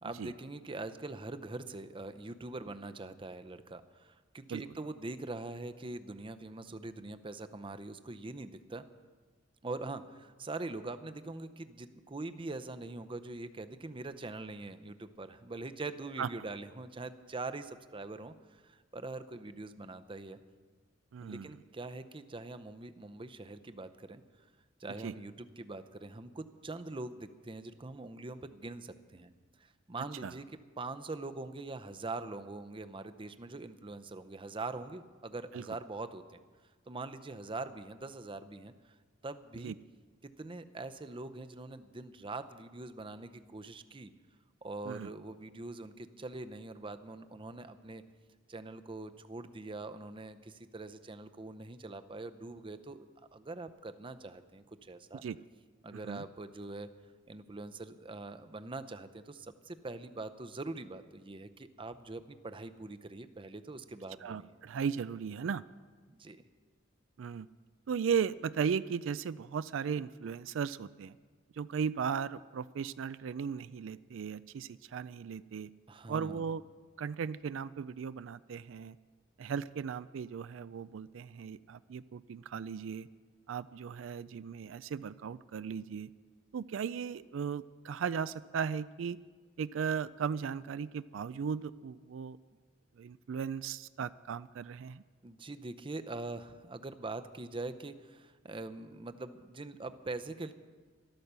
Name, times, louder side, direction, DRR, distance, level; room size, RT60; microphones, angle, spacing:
voice 1, 0.0-8.8 9.6-20.4 21.2-24.2 24.8-29.3 29.6-30.5 30.8-36.4 36.9-39.0 39.2-39.7 40.2-44.1 44.6-48.0 48.5-53.1 53.3-55.2 55.8-56.9 57.3-64.5 66.1-66.4 75.9-76.5 95.2-100.5, right 2 dB, 25° right, 10 dB, 0.6 m, -43 dB
voice 2, 21.1-21.5 25.0-25.1 30.2-30.3 35.5-35.6 39.6-39.7 44.9-45.1 55.2-55.4 55.9-56.2 64.2-65.6 67.2-67.5 67.9-71.2 71.6-75.7 76.1-76.6 77.0-79.0 79.4-83.1 83.5-86.1 86.5-89.2 89.6-92.4 93.0-95.0, right 6 dB, 75° right, 16 dB, 0.4 m, -36 dB
13.0 x 12.5 x 6.8 m, 1.4 s
head